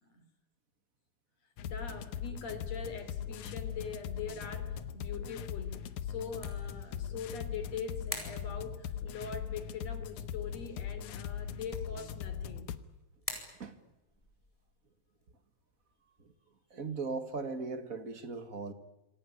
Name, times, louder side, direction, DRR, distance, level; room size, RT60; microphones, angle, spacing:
sound 1, 1.6-12.8, left 9 dB, 85° left, 2.6 m, -40 dB
voice 1, 1.6-12.7, left 5 dB, 60° left, 4.3 m, -43 dB
sound 2, 12.4-17.8, left 1 dB, 10° left, 4.7 m, -51 dB
voice 2, 16.7-18.7, right 4 dB, 35° right, 1.6 m, -38 dB
27.0 x 17.5 x 9.9 m
omnidirectional pair, 3.4 m